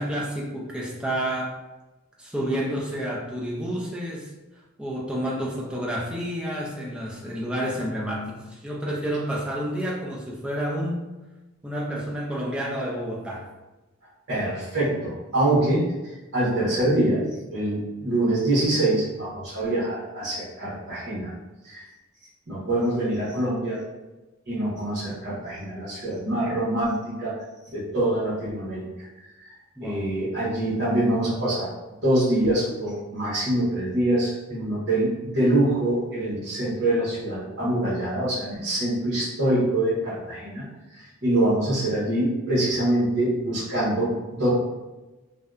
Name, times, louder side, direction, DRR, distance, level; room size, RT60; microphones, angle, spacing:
voice 1, 0.0-1.5 2.2-4.3 4.8-11.1 11.6-13.5 29.8-30.1, equal, 5° right, -4 dB, 0.3 m, -29 dB
voice 2, 14.3-15.8 16.3-17.2 17.5-21.3 21.6-21.8 22.5-23.8 24.5-27.3 27.7-28.9 29.8-40.6 41.0-44.5, right 1 dB, 55° right, -9 dB, 1.0 m, -24 dB
2.6 x 2.1 x 2.3 m, 1.1 s
head